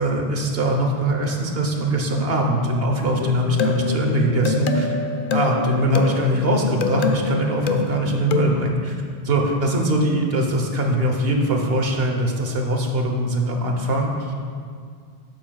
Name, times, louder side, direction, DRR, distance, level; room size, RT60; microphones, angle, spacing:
voice 1, 0.0-4.9 5.3-9.0 9.2-14.3, right 1 dB, 70° right, 2 dB, 1.2 m, -22 dB
sound 1, 3.2-8.7, left 4 dB, 65° left, 0.7 m, -26 dB
12.0 x 8.2 x 2.3 m, 2.1 s
omnidirectional pair, 1.1 m